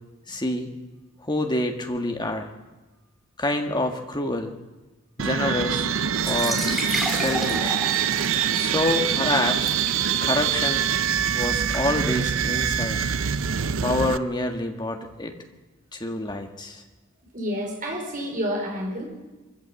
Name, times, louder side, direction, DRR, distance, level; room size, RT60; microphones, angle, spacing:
voice 1, 0.3-0.7 1.2-2.5 3.4-4.5 5.2-5.9 6.3-6.6 7.0-7.8 8.5-9.7 10.2-10.9 11.3-13.1 13.8-15.4 15.9-16.8, left 2 dB, 20° left, 4 dB, 1.8 m, -27 dB
sound 1, 5.2-14.2, right 8 dB, 65° right, 0.6 m, -24 dB
sound 2, 6.1-13.7, equal, ahead, 3.7 m, -34 dB
voice 2, 17.3-19.0, equal, 40° right, 0 dB, 4.9 m, -30 dB
22.5 x 14.5 x 8.3 m, 1.1 s
head